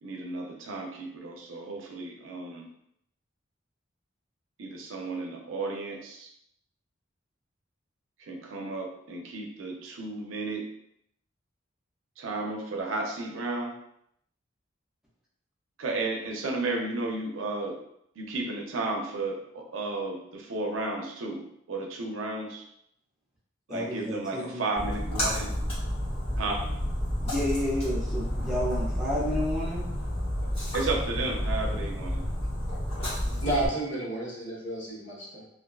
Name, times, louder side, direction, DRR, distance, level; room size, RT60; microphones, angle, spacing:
voice 1, 0.0-2.7 4.6-6.3 8.2-10.7 12.2-13.7 15.8-17.8 18.2-22.7 23.7-25.5 26.4-26.6 30.7-32.2, right 2 dB, 85° right, 1 dB, 0.5 m, -33 dB
voice 2, 23.7-24.6 27.2-29.9, left 1 dB, 5° right, -8 dB, 0.6 m, -31 dB
Splash splatter, 24.8-33.7, equal, 30° left, 0.9 m, -30 dB
voice 3, 33.4-35.5, right 2 dB, 80° left, -4 dB, 0.8 m, -31 dB
2.4 x 2.2 x 2.3 m, 0.73 s
head